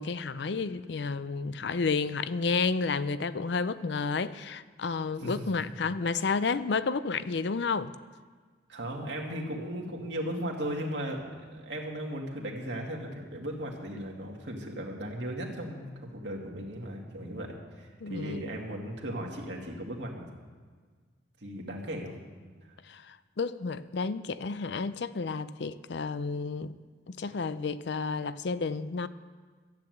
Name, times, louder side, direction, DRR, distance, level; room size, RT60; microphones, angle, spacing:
voice 1, 0.0-7.9 18.0-18.6 22.9-26.7 27.1-29.1, left 4 dB, 70° left, 15 dB, 0.5 m, -31 dB
voice 2, 5.2-5.8 8.7-20.3 21.4-22.1, equal, 70° right, 0 dB, 2.1 m, -37 dB
13.0 x 9.0 x 7.8 m, 1.5 s
head